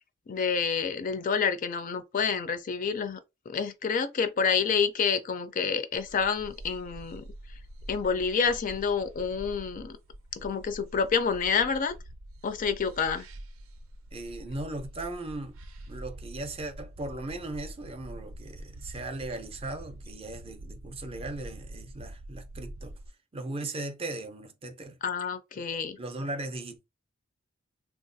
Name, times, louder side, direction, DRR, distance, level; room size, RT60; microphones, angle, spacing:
voice 1, 0.3-3.2 3.5-7.2 7.9-10.0 10.4-11.9 12.4-13.2 25.0-26.0, left 6 dB, 40° left, 0.4 m, -28 dB
sound 1, 5.9-23.1, right 1 dB, 80° right, 0.5 m, -45 dB
voice 2, 14.1-15.6 15.9-22.9 23.3-25.0 26.0-26.9, right 2 dB, 30° right, 0.5 m, -38 dB
3.4 x 2.3 x 2.6 m
head